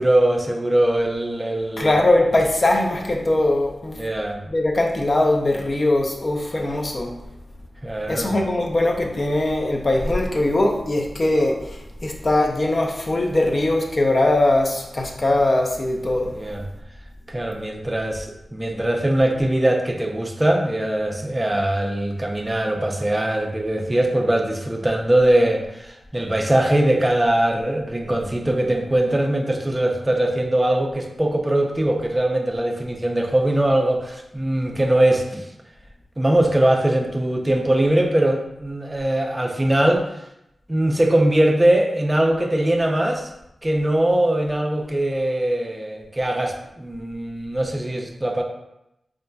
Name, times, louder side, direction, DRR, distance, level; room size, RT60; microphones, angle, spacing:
voice 1, 0.0-1.9 3.9-4.4 7.8-8.3 16.3-16.6 17.3-35.5 36.2-40.0 40.7-43.3 43.6-48.4, right 1 dB, 15° right, 2 dB, 0.4 m, -21 dB
voice 2, 1.8-4.0 4.4-7.1 8.1-16.3, left 1 dB, 40° left, 1 dB, 0.5 m, -21 dB
5.1 x 2.4 x 2.2 m, 0.85 s
wide cardioid pair, 130°, 0 cm